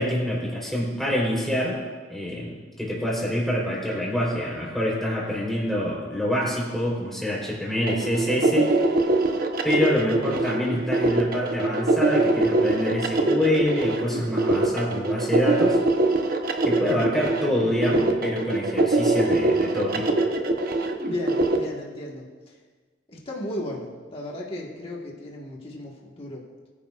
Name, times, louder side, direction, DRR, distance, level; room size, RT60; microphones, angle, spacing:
voice 1, 0.0-1.8 2.1-8.7 9.6-15.8 16.6-20.1, left 1 dB, ahead, -4 dB, 3.9 m, -26 dB
sound 1, 7.9-21.6, right 2 dB, 55° right, 1.0 m, -23 dB
voice 2, 16.8-17.3 21.0-22.6 23.1-26.5, left 1 dB, 35° left, -3 dB, 1.6 m, -35 dB
21.5 x 10.0 x 2.5 m, 1.4 s
head